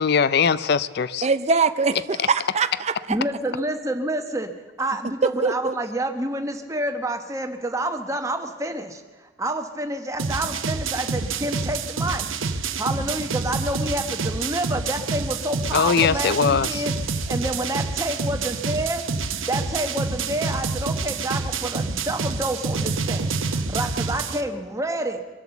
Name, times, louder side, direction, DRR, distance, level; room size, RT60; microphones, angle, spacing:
voice 1, 0.0-1.3 15.7-16.8, left 6 dB, 50° left, 0.4 m, -21 dB
voice 2, 1.2-3.2 5.2-5.8, right 4 dB, 35° right, 0.5 m, -23 dB
voice 3, 3.1-4.5 4.8-12.3 12.8-19.0 19.5-25.2, right 1 dB, 15° right, 1.1 m, -28 dB
sound 1, 10.2-24.4, right 4 dB, 80° right, 0.9 m, -27 dB
23.5 x 8.1 x 7.1 m
head